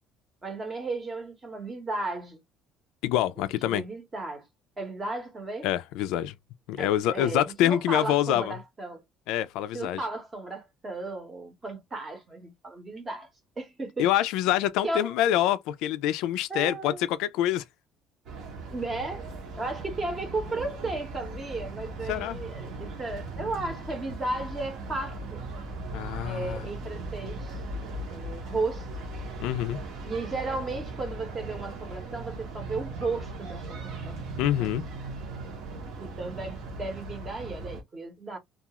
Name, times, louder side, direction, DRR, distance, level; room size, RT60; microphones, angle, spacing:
voice 1, 0.4-2.4 3.6-4.4 4.8-5.7 6.8-9.0 9.7-13.3 13.6-14.1 14.8-15.1 16.5-17.0 18.7-25.4 26.2-27.6 28.1-28.9 30.0-34.2 34.5-34.7 36.0-38.4, right 2 dB, 15° right, 0.8 m, -34 dB
voice 2, 3.0-3.8 5.6-6.3 6.7-8.5 9.3-10.0 14.0-17.6 22.1-22.4 25.9-26.6 29.4-29.8 34.4-34.8, left 12 dB, 75° left, 0.3 m, -26 dB
sound 1, 18.3-37.8, right 2 dB, 50° right, 0.8 m, -38 dB
2.3 x 2.3 x 2.8 m
cardioid pair, 170°, 0 cm